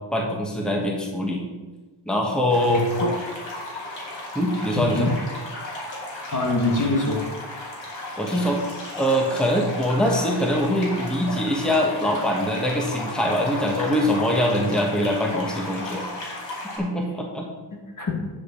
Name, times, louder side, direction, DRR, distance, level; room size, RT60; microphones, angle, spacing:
voice 1, 0.1-1.4 2.1-2.9 4.3-5.1 8.2-8.6 9.0-16.1 16.8-17.5, equal, ahead, 0 dB, 1.5 m, -23 dB
sound 1, 2.5-16.8, left 1 dB, 65° left, 3.0 m, -35 dB
voice 2, 2.7-3.2 4.8-5.1 6.3-7.3 17.7-18.2, left 2 dB, 40° left, 0 dB, 2.1 m, -24 dB
9.6 x 5.3 x 5.4 m, 1.3 s
cardioid pair, 65°, 48 cm